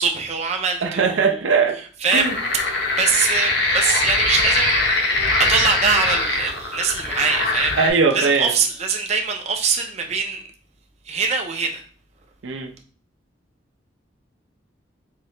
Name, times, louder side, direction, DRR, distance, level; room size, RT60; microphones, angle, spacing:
voice 1, 0.0-1.4 2.0-5.0 5.4-7.8 8.1-10.4 11.1-11.8, right 5 dB, 35° right, 0.4 m, -23 dB
voice 2, 0.8-1.8 2.1-2.4 7.7-8.5 12.4-12.7, right 5 dB, 85° right, 0.5 m, -20 dB
sound 1, 2.1-7.9, left 2 dB, 60° left, 0.8 m, -22 dB
3.9 x 2.7 x 3.2 m
head